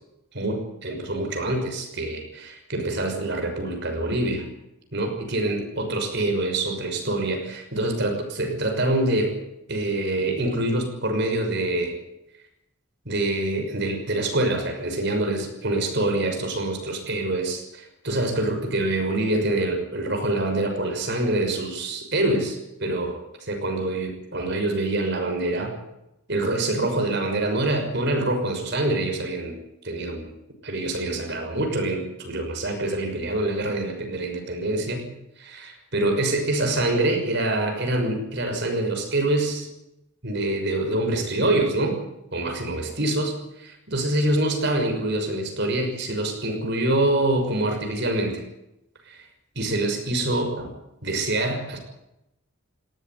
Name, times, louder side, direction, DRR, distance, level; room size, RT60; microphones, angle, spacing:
voice 1, 0.3-4.5 4.9-9.3 9.7-12.0 13.0-23.2 23.5-25.7 26.3-29.5 29.8-30.2 30.6-35.1 35.4-39.7 40.2-42.0 42.3-48.4 49.1-49.2 49.5-50.7 51.0-51.8, right 2 dB, 55° right, 4 dB, 6.2 m, -25 dB
19.0 x 18.0 x 9.6 m, 0.87 s
head